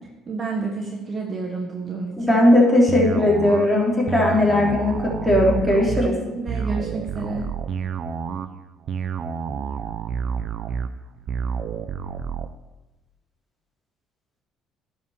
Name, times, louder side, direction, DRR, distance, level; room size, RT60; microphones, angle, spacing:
voice 1, 0.3-2.1 6.2-7.5, right 3 dB, 35° right, 1 dB, 1.4 m, -29 dB
voice 2, 2.2-6.1, left 1 dB, 5° left, -4 dB, 3.5 m, -18 dB
sound 1, 2.9-12.5, right 7 dB, 55° right, 0.6 m, -29 dB
10.5 x 5.2 x 6.7 m, 1.1 s
cardioid pair, 95°, 0 cm